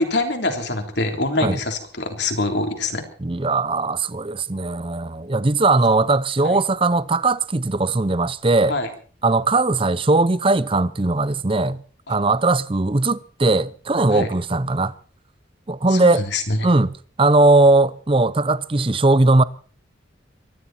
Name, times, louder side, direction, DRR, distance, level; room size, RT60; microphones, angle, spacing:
voice 1, 0.0-3.0 6.4-6.6 8.7-8.9 12.1-12.2 14.1-14.3 15.9-16.7, left 2 dB, 60° left, 3.4 m, -24 dB
voice 2, 3.2-8.7 9.2-11.8 12.1-14.9 15.7-16.2 16.6-16.9 17.2-19.4, right 2 dB, 25° right, 0.6 m, -19 dB
24.5 x 12.5 x 4.3 m
head